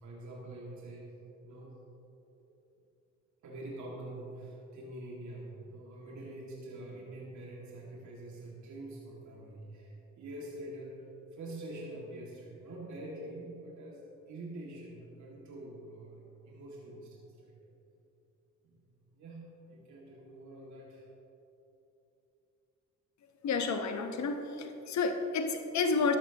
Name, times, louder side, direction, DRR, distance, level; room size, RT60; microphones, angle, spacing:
voice 1, 0.0-1.1 1.4-1.8 3.4-17.6 18.6-18.8 19.2-21.1, right 1 dB, 70° right, -4 dB, 2.2 m, -45 dB
voice 2, 23.4-26.2, left 4 dB, 65° left, 6 dB, 1.1 m, -30 dB
13.0 x 12.5 x 3.0 m, 2.9 s
cardioid pair, 90°, 30 cm